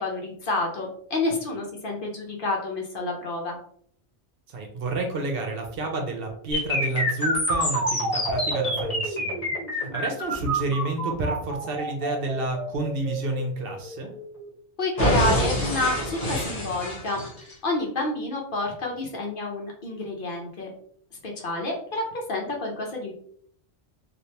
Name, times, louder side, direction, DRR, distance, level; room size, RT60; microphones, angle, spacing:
voice 1, 0.0-3.6 14.8-17.2 17.6-20.7 21.2-23.1, left 2 dB, 55° left, 0 dB, 0.8 m, -29 dB
voice 2, 4.5-14.1, right 2 dB, 60° right, 3 dB, 0.8 m, -30 dB
sound 1, 6.5-14.5 15.0-17.5, equal, 35° left, 1.2 m, -27 dB
3.2 x 2.5 x 2.7 m, 0.62 s
omnidirectional pair, 1.1 m